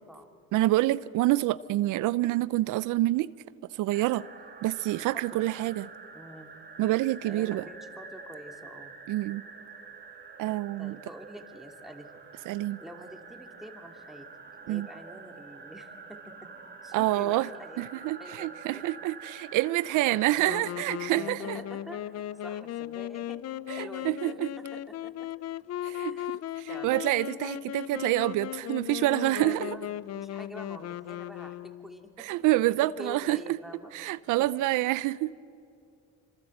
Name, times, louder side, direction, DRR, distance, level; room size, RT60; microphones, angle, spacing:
voice 1, 0.5-3.3 3.8-4.2 4.6-5.9 6.8-7.6 9.1-9.4 10.4-11.0 12.5-12.8 14.7-14.9 16.9-17.5 17.8-21.6 23.7-24.5 25.8-26.2 26.6-29.8 32.2-33.4 33.9-35.3, right 16 dB, 90° right, 0.5 m, -27 dB
sound 1, 3.9-22.9, right 4 dB, 35° right, 2.7 m, -48 dB
voice 2, 5.0-5.5 6.1-6.5 7.2-8.9 10.8-12.3 12.8-14.3 14.6-16.5 16.8-18.9 19.7-19.8 20.3-25.3 26.0-26.3 26.7-27.0 29.5-29.9 30.2-32.4 32.8-33.9 34.4-34.5, equal, ahead, 2.7 m, -47 dB
Wind instrument woodwind instrument, 20.4-32.1, left 12 dB, 55° left, 0.5 m, -37 dB
26.5 x 25.0 x 7.8 m
cardioid pair, 90°, 30 cm